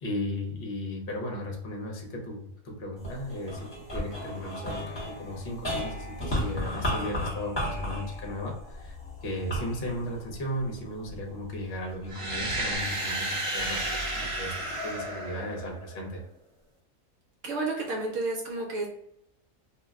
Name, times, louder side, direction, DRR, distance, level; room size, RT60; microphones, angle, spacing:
voice 1, 0.0-9.0 9.2-16.2, left 1 dB, 50° left, 0 dB, 0.9 m, -36 dB
sound 1, 3.0-11.4 12.0-12.8, left 1 dB, 20° left, 1.1 m, -35 dB
sound 2, 12.1-16.0, right 1 dB, 40° right, 0.5 m, -32 dB
voice 2, 17.4-18.9, right 3 dB, 70° right, 0 dB, 0.9 m, -31 dB
2.5 x 2.1 x 3.4 m, 0.77 s
omnidirectional pair, 1.4 m